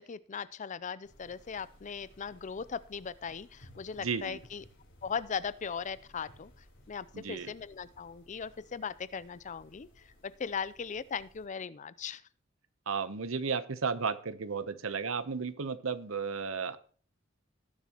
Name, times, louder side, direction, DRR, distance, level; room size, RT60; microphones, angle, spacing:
voice 1, 0.0-4.6 5.0-6.5 6.9-9.9 10.4-12.2, left 6 dB, 35° left, 17 dB, 0.5 m, -38 dB
sound 1, 1.0-11.5, left 1 dB, 65° left, 4.2 m, -59 dB
voice 2, 4.0-4.4 7.1-7.5 12.9-16.8, right 5 dB, 85° right, 13 dB, 0.8 m, -34 dB
18.0 x 7.3 x 3.0 m, 0.43 s
head